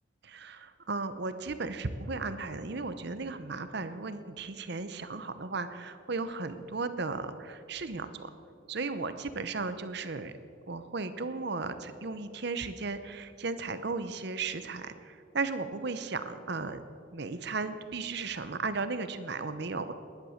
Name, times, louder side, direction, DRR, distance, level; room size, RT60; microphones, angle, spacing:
voice 1, 0.2-8.3 8.7-10.3 10.7-16.8 17.1-19.9, right 3 dB, 55° right, 11 dB, 0.8 m, -35 dB
19.0 x 11.0 x 6.5 m, 2.5 s
head